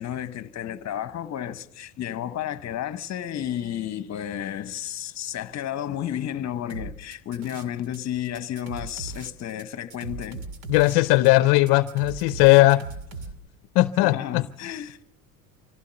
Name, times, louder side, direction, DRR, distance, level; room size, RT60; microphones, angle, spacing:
voice 1, 0.0-10.4 14.0-15.0, left 11 dB, 35° left, 1.1 m, -32 dB
sound 1, 6.7-8.0 8.2-13.3, right 3 dB, 70° right, 2.3 m, -38 dB
voice 2, 10.7-12.8 13.8-14.4, left 19 dB, 55° left, 0.6 m, -18 dB
25.0 x 15.5 x 6.9 m
hypercardioid pair, 80°, 47 cm